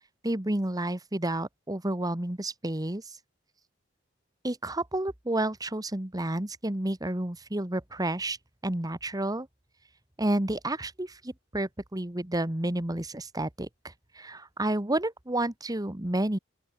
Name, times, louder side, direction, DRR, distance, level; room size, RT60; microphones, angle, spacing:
voice 1, 0.2-3.0 4.4-8.4 8.6-9.5 10.2-16.4, right 1 dB, 20° right, 1.5 m, -30 dB
open air
head